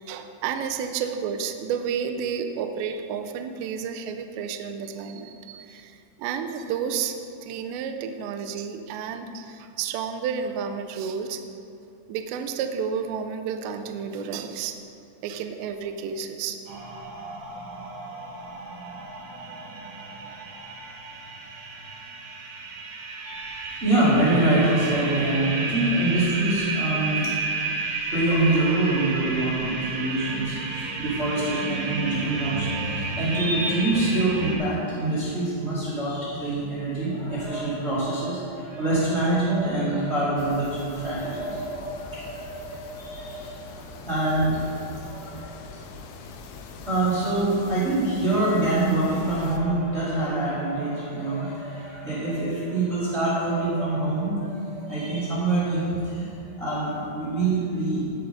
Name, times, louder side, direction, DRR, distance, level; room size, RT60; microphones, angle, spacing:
voice 1, 0.1-7.2 7.4-11.4 12.1-14.8 15.2-16.6, right 7 dB, 85° right, 6 dB, 2.6 m, -31 dB
sound 1, 16.7-34.6, right 3 dB, 70° right, 2.2 m, -32 dB
voice 2, 23.2-27.3 28.1-45.7 46.8-58.1, right 2 dB, 30° right, -10 dB, 1.1 m, -25 dB
sound 2, 40.4-49.6, left 4 dB, 85° left, 3.2 m, -42 dB
16.0 x 5.5 x 5.3 m, 2.6 s
omnidirectional pair, 5.7 m